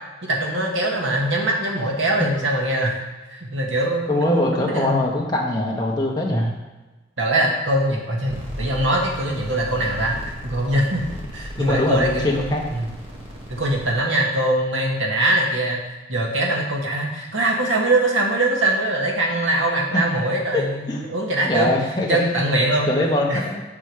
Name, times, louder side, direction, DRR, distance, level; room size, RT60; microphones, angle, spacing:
voice 1, 0.2-3.0 3.3-5.0 6.3-6.5 7.2-11.0 11.3-12.9 13.5-15.8 16.1-21.7 22.1-22.9 23.3-23.4, right 1 dB, 85° right, -1 dB, 1.8 m, -22 dB
voice 2, 4.1-6.5 11.6-12.6 19.9-20.0 20.5-20.6 20.9-21.0 21.4-22.2 22.8-23.6, left 1 dB, 20° left, -2 dB, 1.5 m, -22 dB
sound 1, 8.3-13.9, equal, 30° right, 1.6 m, -36 dB
7.6 x 6.1 x 5.0 m, 1.1 s
head